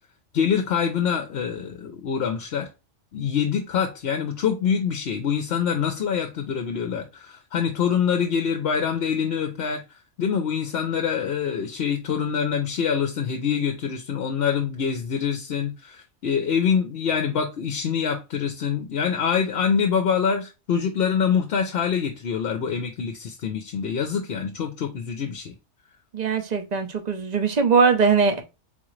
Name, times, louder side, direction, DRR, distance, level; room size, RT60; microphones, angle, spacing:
voice 1, 0.3-2.7 3.1-25.5, left 7 dB, 65° left, 0.8 m, -25 dB
voice 2, 26.1-28.4, right 5 dB, 40° right, 0.7 m, -21 dB
4.0 x 3.7 x 3.1 m
omnidirectional pair, 1.2 m